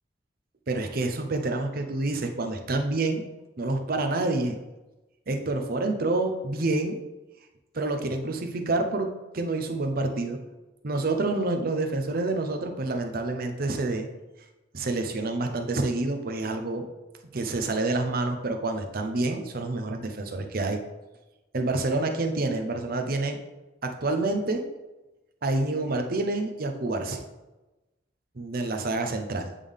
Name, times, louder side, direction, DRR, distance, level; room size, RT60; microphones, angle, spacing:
voice 1, 0.7-3.2 3.6-4.6 5.3-7.0 7.7-10.4 10.8-14.1 14.7-16.9 17.3-20.8 21.5-23.4 23.8-24.6 25.4-27.2 28.4-29.5, right 2 dB, 55° right, 5 dB, 0.7 m, -28 dB
8.3 x 3.6 x 3.5 m, 1.1 s
head